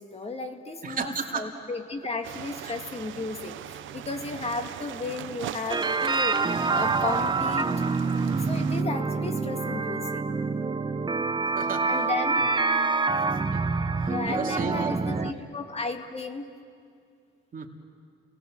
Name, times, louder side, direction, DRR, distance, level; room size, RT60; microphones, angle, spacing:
voice 1, 0.0-7.7 8.3-10.3 11.8-12.5 14.1-16.5, left 3 dB, 30° left, 6 dB, 2.1 m, -34 dB
voice 2, 0.8-1.5 2.6-2.7 11.6-12.0 13.3-13.6 14.0-15.3 17.5-17.7, right 5 dB, 45° right, 2 dB, 2.8 m, -34 dB
sound 1, 2.2-8.8, right 12 dB, 75° right, 0.7 m, -40 dB
sound 2, 5.7-15.3, right 4 dB, 25° right, 0.9 m, -26 dB
29.0 x 19.5 x 7.6 m, 2.2 s
cardioid pair, 90°, 20 cm